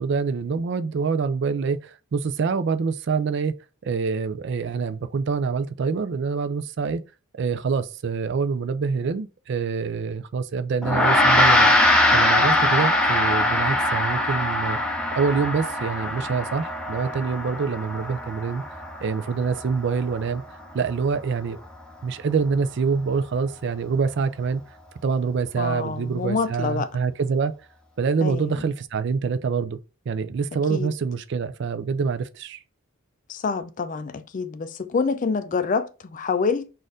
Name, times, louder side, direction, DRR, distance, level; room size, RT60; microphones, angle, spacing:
voice 1, 0.0-3.5 3.8-7.0 7.3-14.8 15.1-18.6 19.0-20.4 20.7-21.6 22.0-24.6 25.0-27.5 28.0-29.8 30.1-32.6, right 5 dB, 55° right, 0.4 m, -26 dB
Gong, 10.8-20.4, left 1 dB, 5° left, 0.7 m, -22 dB
voice 2, 25.6-26.9 28.2-28.6 30.7-30.9 33.3-36.7, left 5 dB, 35° left, 0.3 m, -27 dB
4.2 x 2.5 x 4.8 m
head